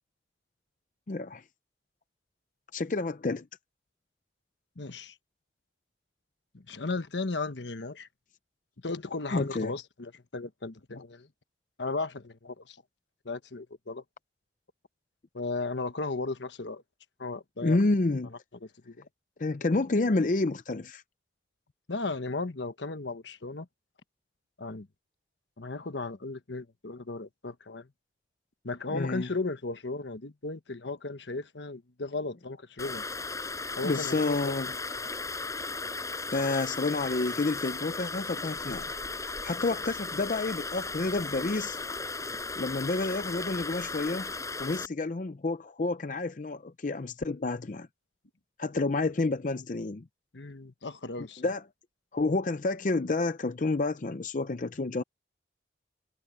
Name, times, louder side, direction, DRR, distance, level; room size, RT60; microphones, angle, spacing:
voice 1, 1.1-1.4 2.7-3.5 9.3-9.7 17.6-18.3 19.4-21.0 28.9-29.3 33.8-34.7 36.3-41.8 42.6-44.3 44.6-47.9 48.6-50.0 51.4-51.6 52.1-55.0, left 3 dB, 45° left, 0.5 m, -29 dB
voice 2, 4.8-5.2 6.5-8.1 8.8-11.3 11.8-12.8 13.2-14.0 15.3-16.8 17.2-17.8 18.6-19.0 21.9-23.7 24.6-24.9 25.6-27.9 28.6-33.0 33.8-34.5 50.3-51.5, left 3 dB, 80° left, 1.3 m, -35 dB
sound 1, 32.8-44.9, left 3 dB, 20° left, 6.7 m, -36 dB
head